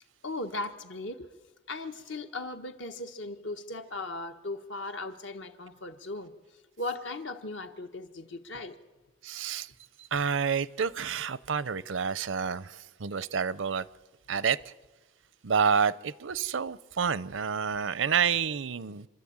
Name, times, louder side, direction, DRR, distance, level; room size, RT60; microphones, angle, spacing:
voice 1, 0.2-1.3 1.7-6.3 6.8-8.8, left 2 dB, 70° left, 1.4 m, -37 dB
voice 2, 9.2-9.7 10.0-13.9 14.3-14.6 15.4-19.1, right 6 dB, 80° right, 0.6 m, -29 dB
27.0 x 12.0 x 8.8 m
head